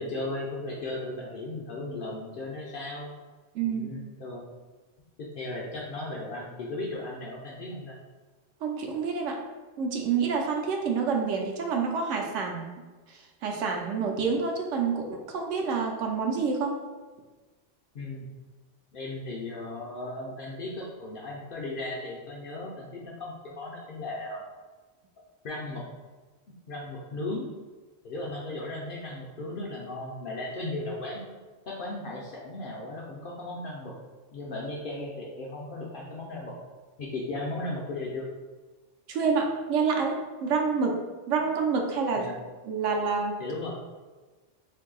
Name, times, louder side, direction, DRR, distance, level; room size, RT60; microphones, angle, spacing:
voice 1, 0.0-3.1 3.6-4.5 5.2-8.0 17.9-18.3 18.9-24.4 25.4-25.8 26.7-27.5 28.0-31.3 31.7-33.9 34.3-36.5 37.0-38.3 42.2-42.3 43.4-43.8, left 2 dB, 60° left, -3 dB, 0.6 m, -36 dB
voice 2, 3.5-3.9 8.6-9.4 9.8-12.7 13.1-16.8 39.1-42.3 42.6-43.4, right 5 dB, 75° right, 2 dB, 0.9 m, -28 dB
2.7 x 2.6 x 3.8 m, 1.3 s
omnidirectional pair, 1.3 m